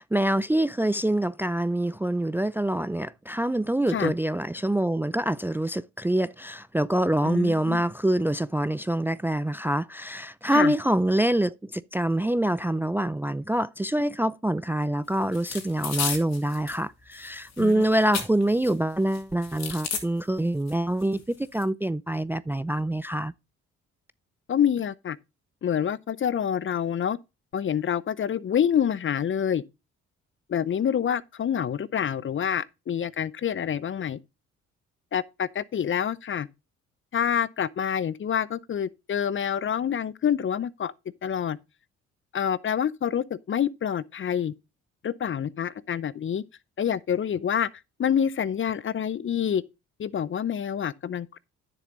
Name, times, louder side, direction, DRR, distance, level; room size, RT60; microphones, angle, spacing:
voice 1, 0.0-23.3, right 1 dB, 5° right, 0.4 m, -25 dB
voice 2, 7.2-7.8 10.5-10.7 17.6-17.8 24.5-25.2 25.6-27.2 27.5-29.6 30.5-34.2 35.1-36.5 37.1-40.9 41.2-41.6 42.3-44.5 45.0-46.4 46.8-47.7 48.0-49.6 50.0-51.4, left 8 dB, 40° left, 0.6 m, -27 dB
sound 1, 15.3-16.8 17.1-18.7 19.1-20.0 20.7-20.8 21.0-21.6, left 6 dB, 60° left, 2.8 m, -33 dB
10.0 x 6.9 x 3.9 m
supercardioid pair, 60°, 31 cm